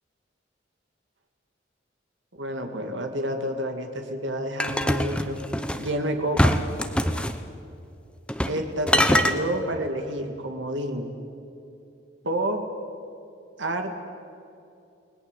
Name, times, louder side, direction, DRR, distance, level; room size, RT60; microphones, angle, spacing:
voice 1, 2.3-5.4 5.8-6.6 8.5-11.1 12.2-12.6 13.6-14.0, right 1 dB, 80° right, 5 dB, 2.4 m, -29 dB
sound 1, 4.6-5.9 6.4-7.4 8.3-8.6 8.9-9.4, equal, 5° left, 1.0 m, -23 dB
30.0 x 20.0 x 8.4 m, 2.6 s
head